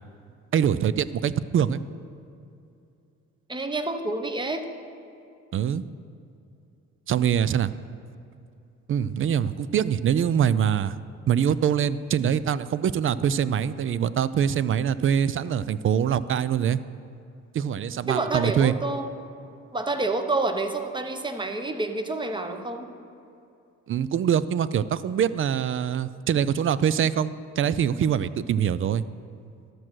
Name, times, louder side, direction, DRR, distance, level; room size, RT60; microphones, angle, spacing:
voice 1, 0.5-1.8 5.5-5.8 7.1-7.7 8.9-11.0 11.3-16.8 17.5-18.7 23.9-29.0, right 8 dB, 45° right, 16 dB, 0.4 m, -24 dB
voice 2, 3.5-4.7 18.1-19.1 19.7-22.9, right 2 dB, 15° right, 7 dB, 0.9 m, -28 dB
13.0 x 6.2 x 6.2 m, 2.6 s
cardioid pair, 90°, 30 cm